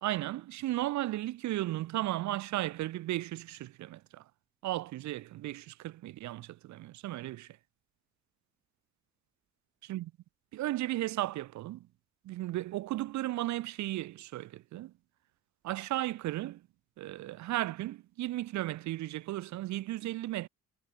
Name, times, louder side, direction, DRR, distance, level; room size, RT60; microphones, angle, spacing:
voice 1, 0.0-4.2 4.6-7.6 9.9-10.1 10.5-11.9 12.2-14.9 15.6-16.6 17.0-20.5, right 15 dB, 70° right, 0.6 m, -35 dB
cardioid pair, 90°, 30 cm